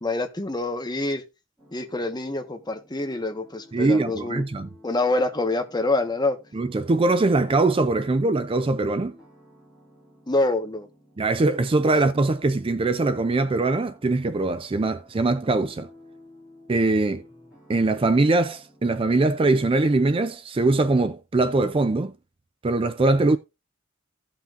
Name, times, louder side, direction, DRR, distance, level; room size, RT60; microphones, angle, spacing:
voice 1, 0.0-1.2 1.7-4.4 4.8-6.4 10.3-10.9 11.9-12.0, left 2 dB, 20° left, 1.2 m, -26 dB
sound 1, 1.6-20.3, left 1 dB, 5° right, 6.6 m, -52 dB
voice 2, 3.7-4.7 6.5-9.2 11.2-15.9 16.7-17.2 17.7-22.1 22.6-23.4, right 2 dB, 25° right, 0.4 m, -22 dB
16.0 x 5.7 x 2.5 m
head